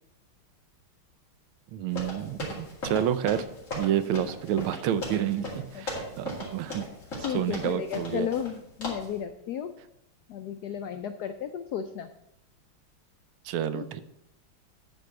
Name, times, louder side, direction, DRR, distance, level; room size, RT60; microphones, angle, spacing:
voice 1, 1.7-3.5 3.8-6.8 7.3-8.3 13.4-14.0, right 10 dB, 80° right, 13 dB, 1.4 m, -29 dB
sound 1, 1.9-8.5 8.8-9.1, left 1 dB, 35° left, 2.6 m, -37 dB
voice 2, 5.7-6.1 7.2-9.7 10.3-12.1 13.7-14.0, left 9 dB, 85° left, 8 dB, 0.8 m, -34 dB
9.5 x 4.5 x 6.6 m, 0.79 s
omnidirectional pair, 2.3 m